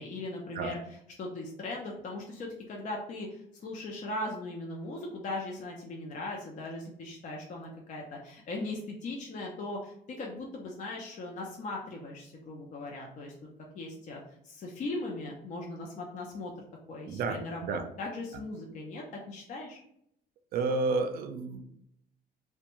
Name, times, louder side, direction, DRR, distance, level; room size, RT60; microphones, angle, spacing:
voice 1, 0.0-13.5 13.7-16.5 16.9-19.8, left 2 dB, 45° left, -1 dB, 0.5 m, -39 dB
voice 2, 17.1-17.8 20.5-21.6, right 3 dB, 60° right, 7 dB, 0.4 m, -31 dB
2.5 x 2.2 x 2.9 m, 0.73 s
cardioid pair, 110°, 17 cm